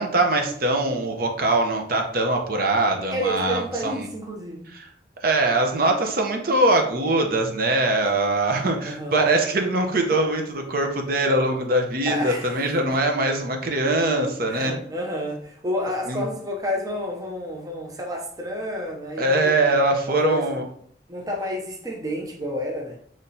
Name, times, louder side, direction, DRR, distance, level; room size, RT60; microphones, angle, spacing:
voice 1, 0.0-4.1 4.8-4.9 5.2-14.7 16.1-16.2 19.2-20.6, right 2 dB, 55° right, 3 dB, 0.8 m, -22 dB
voice 2, 3.1-4.7 8.9-9.3 12.1-13.0 14.5-19.6 20.1-20.5 21.1-23.0, equal, 20° right, 0 dB, 0.6 m, -30 dB
5.8 x 3.2 x 2.7 m, 0.63 s
head